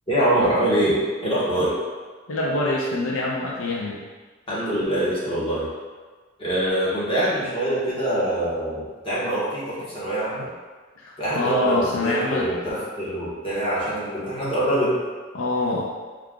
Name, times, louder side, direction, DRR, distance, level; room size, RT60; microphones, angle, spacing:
voice 1, 0.1-1.8 4.5-5.7 6.4-10.5 11.2-15.0, right 1 dB, 30° left, -9 dB, 1.3 m, -24 dB
voice 2, 2.3-4.0 11.0-12.5 15.3-15.8, left 2 dB, 75° left, -2 dB, 0.5 m, -25 dB
4.4 x 2.4 x 3.6 m, 1.4 s
head